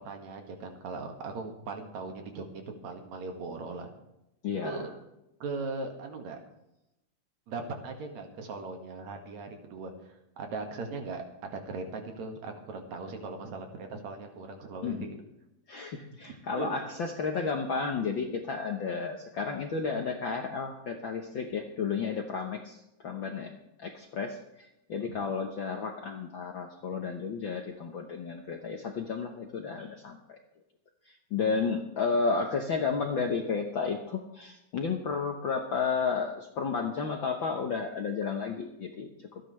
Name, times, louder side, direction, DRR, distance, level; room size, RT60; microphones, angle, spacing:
voice 1, 0.0-3.9 4.6-4.9 5.4-6.4 7.5-9.9 10.4-15.2 16.2-16.8 25.1-25.2 32.0-32.1, right 3 dB, 70° right, 4 dB, 3.0 m, -39 dB
voice 2, 4.4-4.9 14.8-15.2 15.7-30.4 31.1-39.4, left 5 dB, 60° left, 3 dB, 1.3 m, -32 dB
26.0 x 10.0 x 3.3 m, 0.89 s
omnidirectional pair, 3.4 m